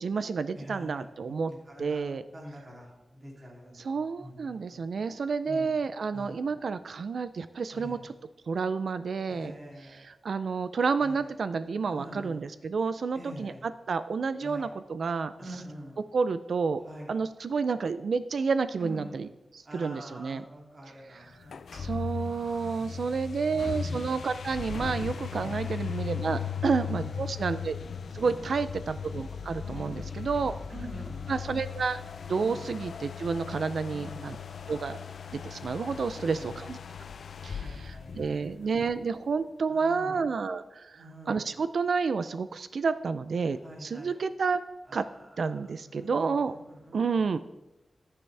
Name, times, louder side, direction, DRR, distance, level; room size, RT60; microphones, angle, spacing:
voice 1, 0.0-1.5 1.8-2.2 3.8-8.1 8.5-9.5 9.9-15.3 16.1-16.8 17.1-19.3 19.5-20.4 21.1-21.2 21.7-27.8 28.1-30.5 31.3-32.0 32.2-34.4 34.7-35.0 35.3-36.8 37.4-44.6 44.9-45.1 45.4-46.6 46.9-47.4, right 5 dB, 70° right, 12 dB, 0.4 m, -30 dB
voice 2, 0.5-1.1 1.5-3.9 4.2-4.8 5.4-5.7 6.1-6.4 7.7-8.0 9.3-10.1 11.0-11.3 11.9-12.4 13.1-13.6 14.4-14.7 15.4-16.0 16.8-17.2 18.8-19.2 19.6-24.1 25.3-25.6 26.3-26.4 26.7-27.3 28.1-28.5 29.6-31.3 32.3-32.8 33.9-34.4 36.1-36.7 37.6-38.8 39.7-40.2 40.9-41.5 43.5-44.1 44.9-47.4, equal, 35° right, -3 dB, 2.9 m, -46 dB
sound 1, 21.4-38.9, left 7 dB, 85° left, 0.4 m, -38 dB
11.5 x 9.7 x 3.4 m, 0.98 s
wide cardioid pair, 175°, 0 cm